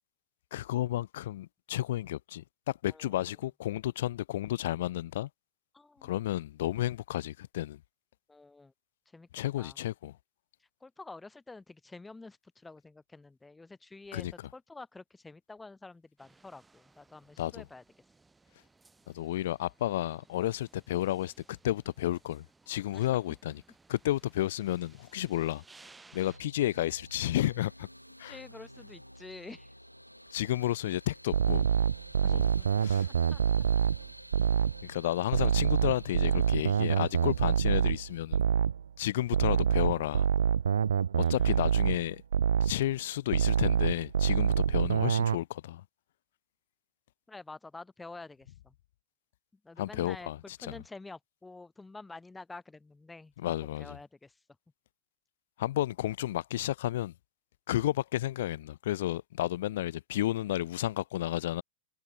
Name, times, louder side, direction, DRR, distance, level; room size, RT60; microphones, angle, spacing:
voice 1, 0.5-5.3 6.0-7.8 9.3-10.1 14.1-14.3 17.4-17.7 19.1-23.6 23.9-25.6 26.1-27.9 28.2-28.4 30.3-31.7 32.3-32.5 32.8-33.1 34.8-38.4 39.0-40.3 41.1-42.2 42.6-45.8 49.8-50.7 53.4-54.0 55.6-57.1 57.7-61.6, left 14 dB, 55° left, 1.9 m, -32 dB
voice 2, 5.7-6.2 8.3-8.7 9.1-9.3 9.6-9.8 10.8-17.8 22.9-23.1 28.2-29.7 32.2-32.7 33.3-33.7 34.0-34.1 41.2-41.8 47.3-48.7 49.6-53.5 53.8-54.4, left 3 dB, 10° left, 2.9 m, -49 dB
sound 1, 16.2-26.4, right 3 dB, 10° right, 7.6 m, -61 dB
sound 2, 26.2-38.2, equal, 90° left, 3.1 m, -52 dB
sound 3, 31.3-34.8 35.3-38.8 39.3-42.8 43.3-45.4, right 8 dB, 70° right, 0.4 m, -26 dB
figure-of-eight pair, 90°, 0 cm